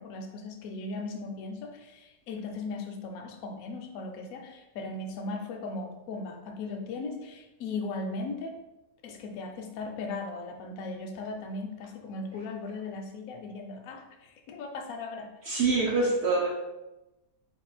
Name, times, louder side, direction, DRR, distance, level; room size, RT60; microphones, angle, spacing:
voice 1, 0.0-8.6 9.0-15.3, left 3 dB, 70° left, 3 dB, 0.9 m, -38 dB
voice 2, 15.5-16.5, right 3 dB, 65° right, -2 dB, 0.7 m, -25 dB
3.6 x 2.4 x 3.9 m, 0.98 s
omnidirectional pair, 1.7 m